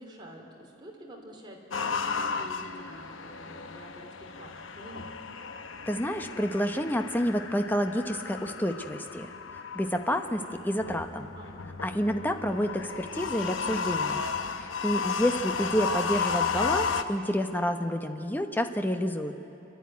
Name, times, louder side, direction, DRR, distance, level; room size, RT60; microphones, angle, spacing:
voice 1, 0.0-5.1 11.3-11.7, equal, 25° right, -1 dB, 3.1 m, -48 dB
sound 1, 1.7-17.0, left 5 dB, 80° left, 0.8 m, -34 dB
voice 2, 5.9-11.3 11.8-14.2 14.6-19.3, equal, 10° left, 6 dB, 0.9 m, -29 dB
28.0 x 11.5 x 9.5 m, 2.8 s
head